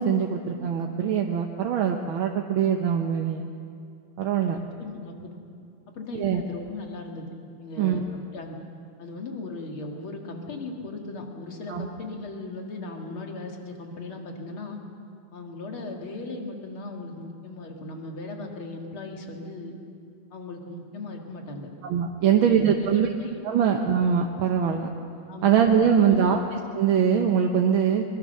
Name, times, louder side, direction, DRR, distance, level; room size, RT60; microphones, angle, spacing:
voice 1, 0.0-3.5 4.2-4.6 6.1-6.4 7.8-8.0 11.7-11.9 21.8-23.1 23.5-24.9 25.4-28.0, right 8 dB, 75° right, 3 dB, 1.8 m, -23 dB
voice 2, 4.5-5.3 5.9-7.3 7.6-8.6 9.0-14.8 15.3-19.8 20.3-21.7 22.2-23.7 25.3-25.6 26.1-26.4, left 2 dB, 85° left, 2 dB, 3.0 m, -37 dB
22.5 x 22.5 x 6.6 m, 2.4 s
omnidirectional pair, 2.2 m